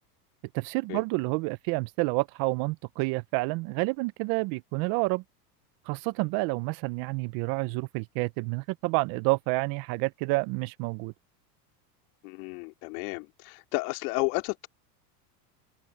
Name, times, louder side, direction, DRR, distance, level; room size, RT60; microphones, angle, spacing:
voice 1, 0.5-5.2 5.9-11.1, right 25 dB, 50° right, 0.5 m, -29 dB
voice 2, 12.2-14.7, left 26 dB, 70° left, 2.8 m, -32 dB
supercardioid pair, 140°, 47 cm